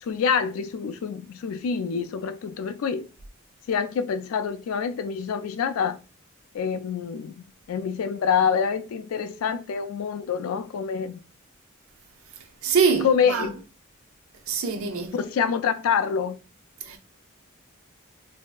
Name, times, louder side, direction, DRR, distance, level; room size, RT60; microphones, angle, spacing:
voice 1, 0.0-3.1 3.7-6.0 6.5-11.2 13.0-13.6 15.1-16.4, left 6 dB, 75° left, 0.3 m, -26 dB
voice 2, 12.6-13.5 14.5-15.1 16.9-17.0, right 5 dB, 75° right, 0.5 m, -24 dB
3.1 x 2.7 x 2.2 m
head